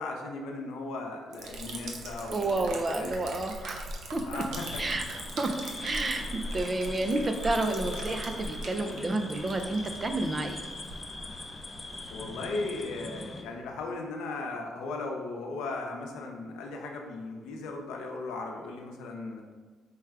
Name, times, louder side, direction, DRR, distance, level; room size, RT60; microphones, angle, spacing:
voice 1, 0.0-2.5 3.0-3.1 4.3-4.8 12.1-19.4, left 3 dB, 90° left, 2 dB, 0.6 m, -37 dB
Liquid, 1.3-13.8, right 1 dB, 75° right, 0.7 m, -41 dB
voice 2, 2.3-3.9 4.1-4.4 4.8-5.5 5.8-10.6, right 2 dB, 30° right, 6 dB, 0.5 m, -30 dB
sound 1, 4.6-13.4, left 2 dB, 25° left, 0.4 m, -42 dB
4.7 x 2.2 x 4.7 m, 1.4 s
cardioid pair, 90°, 0 cm